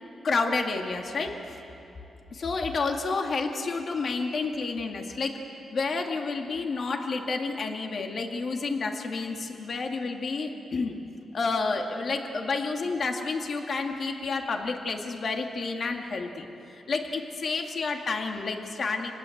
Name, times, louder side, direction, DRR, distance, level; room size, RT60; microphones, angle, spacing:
voice 1, 0.2-1.6 2.3-5.4 5.7-11.0 11.3-19.1, left 4 dB, 55° left, 3 dB, 2.4 m, -30 dB
27.5 x 20.0 x 8.1 m, 2.9 s
cardioid pair, 85°, 0 cm